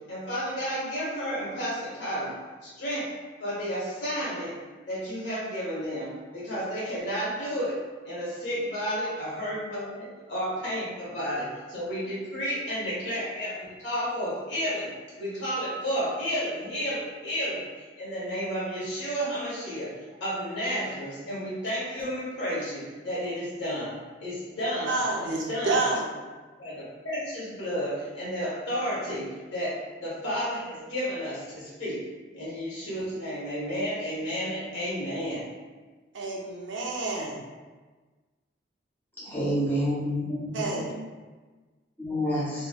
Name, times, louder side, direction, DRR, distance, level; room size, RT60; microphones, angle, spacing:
voice 1, 0.1-2.3 2.6-3.1 3.4-4.5 4.9-7.8 8.0-14.9 15.2-17.6 18.0-19.9 20.2-23.9 24.2-25.8 26.6-29.2 29.5-29.7 30.0-32.0 32.3-35.4, equal, 75° left, -9 dB, 1.4 m, -32 dB
voice 2, 24.9-26.1 36.1-37.4 39.3-39.4 40.5-40.9, right 3 dB, 85° right, -1 dB, 0.6 m, -29 dB
voice 3, 39.2-40.9 42.0-42.7, equal, 10° left, -9 dB, 1.3 m, -28 dB
3.2 x 3.1 x 2.3 m, 1.3 s
head